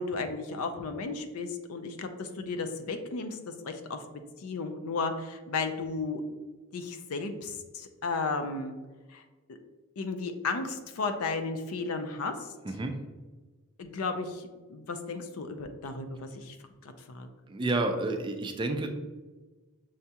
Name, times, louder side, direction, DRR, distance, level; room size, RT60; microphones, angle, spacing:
voice 1, 0.0-4.0 4.4-6.2 6.7-8.7 9.1-9.2 9.5-9.6 10.0-12.5 13.8-16.6 16.8-17.3, left 3 dB, 80° left, 7 dB, 0.5 m, -34 dB
voice 2, 12.6-13.0 17.5-18.9, right 2 dB, 20° right, 5 dB, 0.3 m, -30 dB
6.3 x 2.3 x 2.8 m, 1.3 s
head